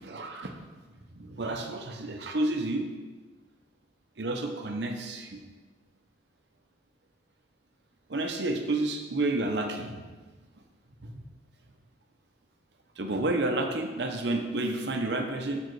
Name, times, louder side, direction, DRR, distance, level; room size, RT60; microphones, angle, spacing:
voice 1, 0.1-0.5 1.2-2.9 4.2-5.4 8.1-10.0 11.0-11.2 13.0-15.6, right 2 dB, 65° right, 4 dB, 0.8 m, -30 dB
7.0 x 4.9 x 4.7 m, 1.3 s
head